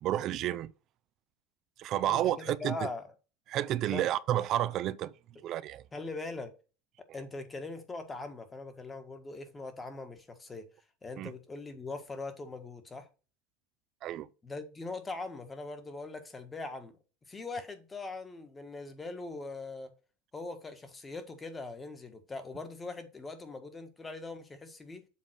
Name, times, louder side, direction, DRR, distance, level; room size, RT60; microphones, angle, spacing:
voice 1, 0.0-0.7 1.8-2.9 3.5-5.1 5.4-5.8 11.2-11.3 14.0-14.3, right 12 dB, 50° right, 0.6 m, -30 dB
voice 2, 2.1-3.1 3.9-4.1 5.9-6.5 7.1-10.7 11.0-13.1 14.4-16.9 17.3-19.9 20.3-25.1, left 3 dB, 20° left, 1.6 m, -41 dB
7.5 x 3.7 x 5.9 m
supercardioid pair, 105°, 0 cm